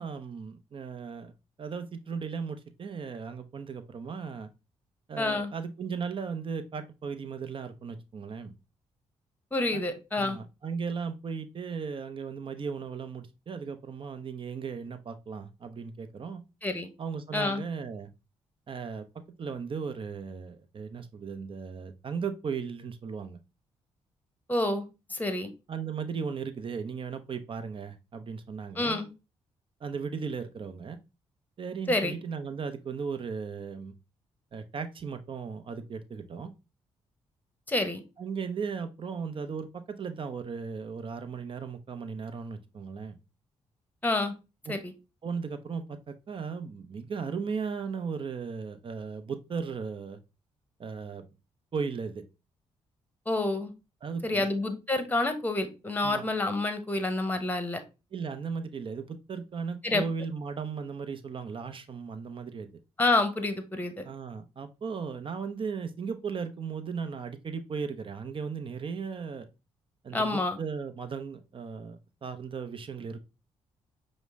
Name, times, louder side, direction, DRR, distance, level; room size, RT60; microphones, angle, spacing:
voice 1, 0.0-1.3 1.6-4.5 5.1-8.5 9.7-9.8 10.2-16.4 17.0-18.1 18.7-23.4 25.7-29.0 29.8-31.0 31.6-33.9 34.5-36.5 38.2-43.2 44.7-44.8 45.2-50.2 50.8-51.2 51.7-52.2 54.0-54.5 56.0-56.2 58.1-62.7 64.0-69.5 70.0-73.2, right 5 dB, 45° right, 9 dB, 0.7 m, -36 dB
voice 2, 5.2-5.5 9.5-10.4 16.6-16.9 17.3-17.6 24.5-24.8 25.1-25.5 28.8-29.1 31.9-32.1 37.7-38.0 44.0-44.3 44.7-44.9 53.3-53.7 54.2-57.8 59.8-60.0 63.0-64.0 70.1-70.6, left 2 dB, 15° left, 8 dB, 0.9 m, -28 dB
5.1 x 2.1 x 3.5 m, 0.28 s
supercardioid pair, 55°, 12 cm